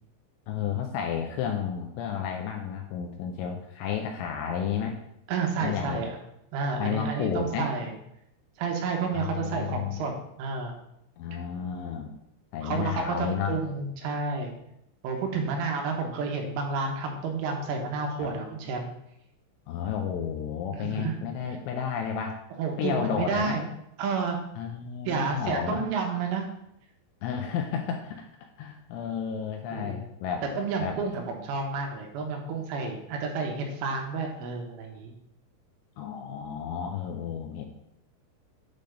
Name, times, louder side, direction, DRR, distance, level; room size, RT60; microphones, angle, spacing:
voice 1, 0.5-5.0 5.6-6.0 6.8-7.7 9.1-10.0 11.2-12.1 12.5-13.5 15.3-15.5 18.2-18.3 19.7-22.4 22.8-23.6 24.6-25.9 27.2-28.3 28.6-30.4 30.8-31.0 36.0-37.7, left 8 dB, 85° left, 3 dB, 2.8 m, -32 dB
voice 2, 5.3-6.2 6.5-7.9 8.6-10.1 10.4-10.7 12.6-14.5 15.0-18.9 20.7-21.1 22.6-23.7 24.0-24.4 25.1-26.5 29.7-30.0 30.6-35.1, right 4 dB, 80° right, 2 dB, 3.3 m, -30 dB
8.6 x 3.3 x 5.1 m, 0.79 s
omnidirectional pair, 5.9 m